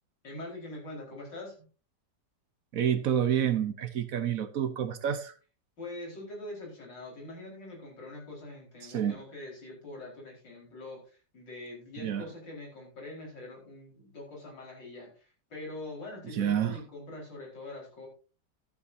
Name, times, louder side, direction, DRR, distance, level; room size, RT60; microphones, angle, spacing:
voice 1, 0.2-1.7 5.8-18.1, left 2 dB, 90° left, 5.1 m, -44 dB
voice 2, 2.7-5.3 8.8-9.2 12.0-12.2 16.3-16.8, right 9 dB, 60° right, 1.0 m, -28 dB
13.5 x 11.5 x 2.6 m
omnidirectional pair, 1.9 m